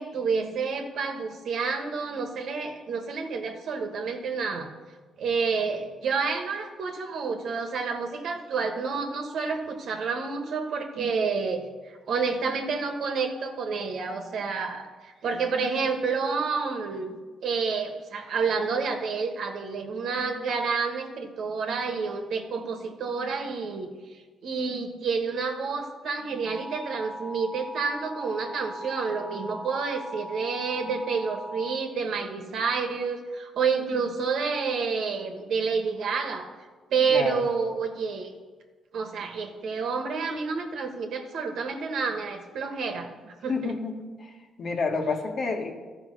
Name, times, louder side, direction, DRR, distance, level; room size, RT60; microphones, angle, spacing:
voice 1, 0.0-4.7 5.2-23.9 24.4-36.5 36.9-38.3 38.9-43.7, right 5 dB, 70° right, 4 dB, 1.3 m, -29 dB
sound 1, 26.4-31.8, equal, 15° right, 1.6 m, -39 dB
voice 2, 37.1-37.4 43.5-44.3 44.6-45.7, left 4 dB, 50° left, 4 dB, 1.5 m, -29 dB
12.0 x 4.9 x 6.2 m, 1.4 s
cardioid pair, 90°, 0 cm